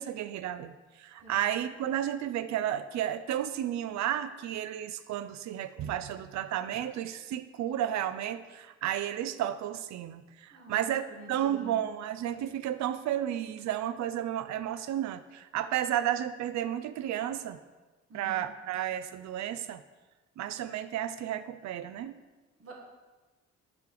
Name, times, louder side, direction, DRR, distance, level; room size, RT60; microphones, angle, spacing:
voice 1, 0.0-17.6 18.1-19.8 20.4-22.2, right 11 dB, 65° right, 13 dB, 0.5 m, -32 dB
voice 2, 10.5-11.8 18.1-18.4 22.6-22.7, right 1 dB, 50° right, -1 dB, 1.7 m, -49 dB
5.5 x 5.0 x 3.9 m, 1.2 s
cardioid pair, 90°, 30 cm